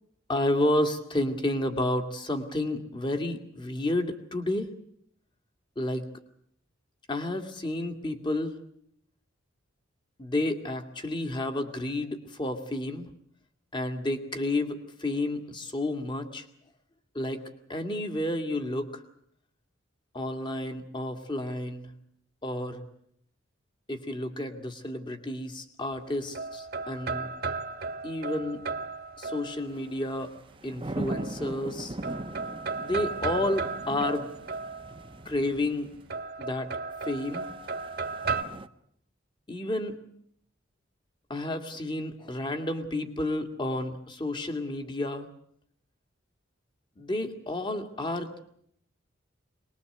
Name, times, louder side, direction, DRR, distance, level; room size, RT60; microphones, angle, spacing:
voice 1, 0.3-4.7 5.8-6.0 7.1-8.6 10.2-13.1 13.7-16.5 17.1-17.4 17.7-19.0 20.1-21.9 22.4-22.8 23.9-27.3 28.0-28.7 29.2-30.3 30.6-32.0 32.8-34.3 35.3-35.9 36.4-36.7 37.0-37.5 39.5-39.9 41.3-45.3 47.0-48.4, left 1 dB, 25° left, 6 dB, 2.2 m, -31 dB
sound 1, 25.9-29.9 31.1-31.7 32.0-35.2 36.1-38.4, right 4 dB, 50° right, 1.5 m, -35 dB
sound 2, 29.8-36.0 37.1-38.7, right 1 dB, 25° right, 0.9 m, -40 dB
23.5 x 20.5 x 7.9 m, 0.68 s
head